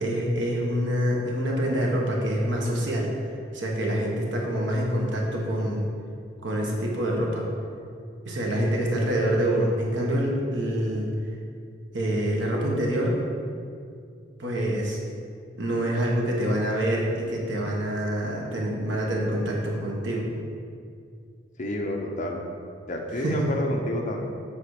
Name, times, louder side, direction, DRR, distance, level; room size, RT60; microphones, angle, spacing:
voice 1, 0.0-3.1 3.5-5.9 6.4-7.4 8.2-11.1 11.9-13.1 14.4-15.0 15.6-20.3 23.1-23.4, equal, 75° right, -2 dB, 1.4 m, -26 dB
voice 2, 21.6-22.4 22.9-24.2, left 1 dB, 45° left, 1 dB, 0.9 m, -29 dB
7.7 x 5.1 x 5.0 m, 2.3 s
head